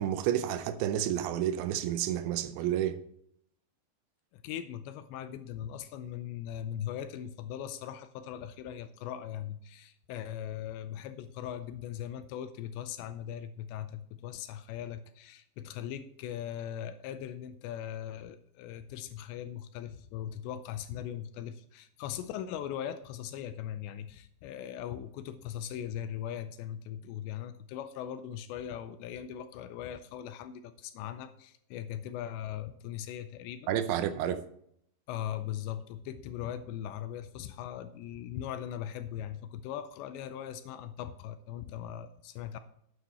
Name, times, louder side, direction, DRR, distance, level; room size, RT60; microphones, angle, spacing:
voice 1, 0.0-3.0 33.7-34.4, right 11 dB, 80° right, 2.9 m, -30 dB
voice 2, 4.3-33.7 35.1-42.6, left 10 dB, 80° left, 2.7 m, -40 dB
9.4 x 9.0 x 4.2 m
omnidirectional pair, 5.3 m